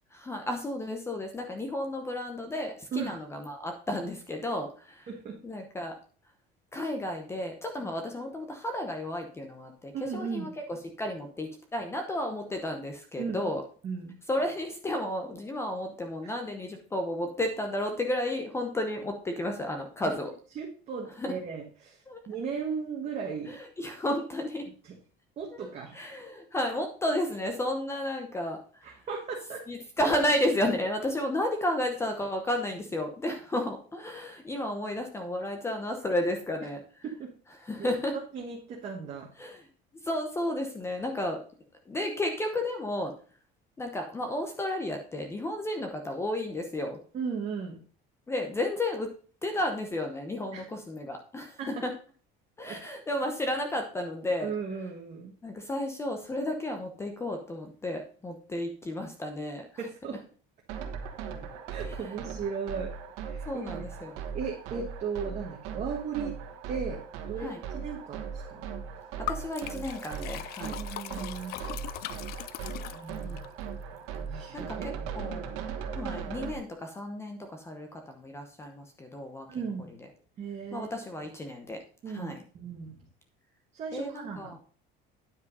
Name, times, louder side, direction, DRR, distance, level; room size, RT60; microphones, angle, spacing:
voice 1, 0.1-5.1 5.4-5.9 6.7-13.6 14.3-20.3 21.2-21.3 22.1-22.2 23.5-24.6 25.5-29.0 29.7-37.0 37.6-38.1 39.4-39.7 40.0-41.4 41.9-43.1 43.8-47.0 48.3-49.1 49.4-51.9 52.6-54.5 55.4-59.6 61.9-62.0 63.5-64.2 67.4-67.6 69.3-70.8 73.2-73.4 74.5-74.8 75.2-75.6 75.9-79.5 80.7-81.8 82.1-82.4 83.9-84.6, left 1 dB, 10° left, 4 dB, 0.9 m, -32 dB
voice 2, 5.1-5.4 9.9-10.5 13.2-13.4 13.8-14.1 16.2-16.3 20.6-23.6 25.4-25.9 28.8-29.6 37.2-37.3 37.8-37.9 38.3-39.3 47.1-47.8 50.5-50.7 51.6-51.8 52.7-52.8 54.4-55.3 59.8-60.2 61.7-63.7 64.3-66.3 66.7-67.0 67.3-68.7 70.6-71.5 72.7-75.1 79.5-79.9 80.4-80.9 82.0-83.1 83.7-84.5, right 5 dB, 30° right, -1 dB, 1.5 m, -37 dB
sound 1, 60.7-76.5, right 6 dB, 85° right, 1.6 m, -38 dB
Liquid, 69.3-73.5, left 15 dB, 50° left, 0.4 m, -39 dB
9.6 x 5.3 x 5.4 m, 0.41 s
cardioid pair, 175°, 21 cm